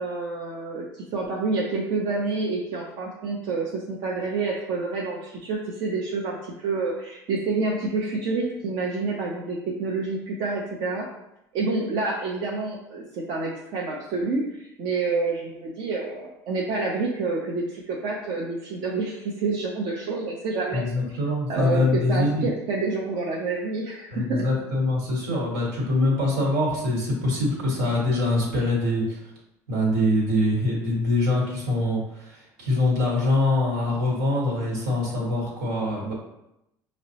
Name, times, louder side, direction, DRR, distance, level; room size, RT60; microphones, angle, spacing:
voice 1, 0.0-11.1 11.5-21.2 21.5-24.5, right 3 dB, 65° right, -2 dB, 0.6 m, -28 dB
voice 2, 20.7-22.5 24.1-29.2 29.7-36.1, left 2 dB, 85° right, -2 dB, 1.3 m, -24 dB
5.0 x 2.0 x 2.8 m, 0.85 s
supercardioid pair, 90°, 9 cm